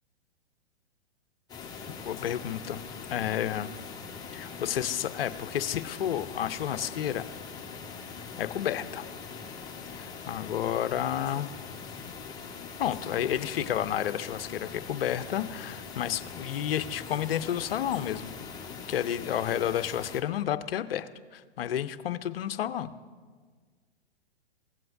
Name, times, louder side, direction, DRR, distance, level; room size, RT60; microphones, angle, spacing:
sound 1, 1.5-20.2, left 5 dB, 10° left, 1.1 m, -42 dB
voice 1, 2.0-2.8 3.1-3.7 4.3-7.2 8.2-9.0 10.0-11.5 12.8-18.4 18.9-22.9, left 10 dB, 60° left, 12 dB, 0.6 m, -31 dB
16.5 x 7.6 x 2.6 m, 1.5 s
figure-of-eight pair, 120°, 32 cm